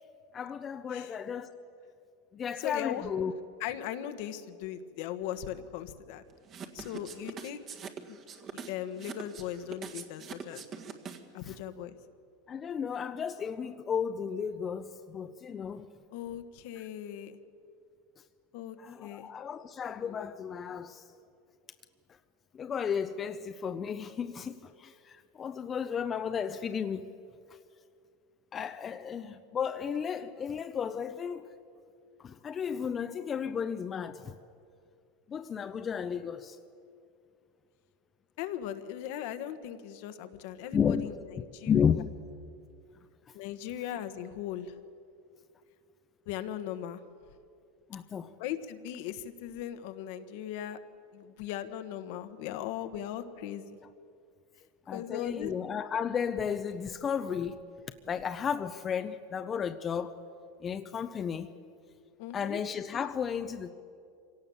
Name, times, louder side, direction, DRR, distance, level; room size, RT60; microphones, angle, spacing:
voice 1, 0.3-1.6 2.3-3.3 11.5-11.6 12.5-15.9 18.8-21.1 22.5-27.1 28.5-31.5 32.2-34.3 35.3-36.6 40.7-41.2 41.6-42.2 47.9-48.3 54.9-57.6 58.1-60.2 60.6-61.5 62.3-63.7, left 7 dB, 25° left, 0.7 m, -33 dB
voice 2, 2.6-3.1 3.6-6.2 6.7-7.6 8.1-8.2 8.7-10.6 11.3-11.9 16.1-17.4 18.5-18.8 19.0-19.3 38.4-41.8 43.3-44.7 46.3-47.0 48.4-50.8 51.1-53.8 54.9-55.5 62.2-62.6, left 11 dB, 65° left, 1.4 m, -38 dB
sound 1, 6.5-11.4, right 6 dB, 35° right, 1.8 m, -43 dB
25.5 x 17.5 x 7.2 m
supercardioid pair, 125°, 0 cm